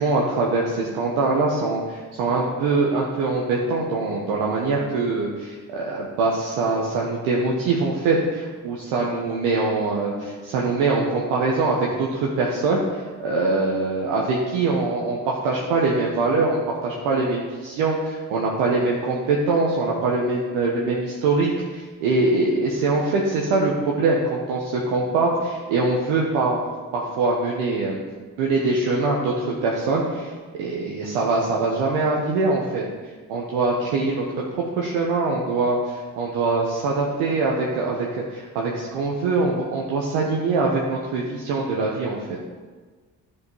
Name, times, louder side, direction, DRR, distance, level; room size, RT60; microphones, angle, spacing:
voice 1, 0.0-26.6 26.9-28.0 28.4-32.8 33.3-34.2 34.6-42.4, right 3 dB, 85° right, -3 dB, 1.2 m, -23 dB
11.0 x 5.0 x 5.5 m, 1.4 s
hypercardioid pair, 45°, 47 cm